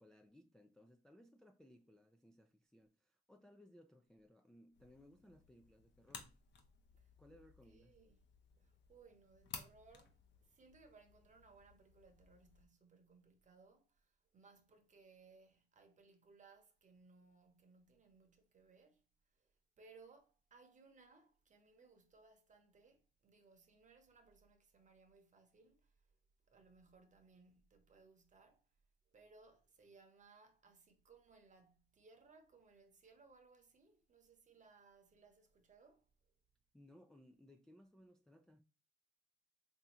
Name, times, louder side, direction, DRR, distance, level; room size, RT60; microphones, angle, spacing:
voice 1, 0.0-6.4 7.2-8.0 36.7-38.6, left 1 dB, 5° left, 0.3 m, -64 dB
sound 1, 4.7-12.7, left 6 dB, 65° left, 0.8 m, -58 dB
voice 2, 7.0-7.4 7.6-8.2 8.6-19.0 19.3-26.1 26.5-28.7 29.1-36.1, right 4 dB, 40° right, 0.9 m, -65 dB
3.6 x 2.7 x 3.0 m
cardioid pair, 90°, 20 cm